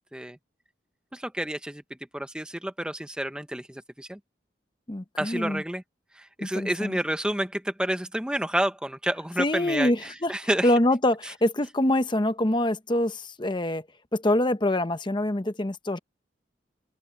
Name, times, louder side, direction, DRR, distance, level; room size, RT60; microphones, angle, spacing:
voice 1, 1.1-1.8 2.1-4.2 5.2-5.8 6.2-10.7, right 1 dB, 5° right, 0.7 m, -29 dB
voice 2, 4.9-5.6 6.4-7.0 9.4-10.3 10.6-13.8 14.1-16.0, left 1 dB, 25° left, 0.9 m, -25 dB
open air
head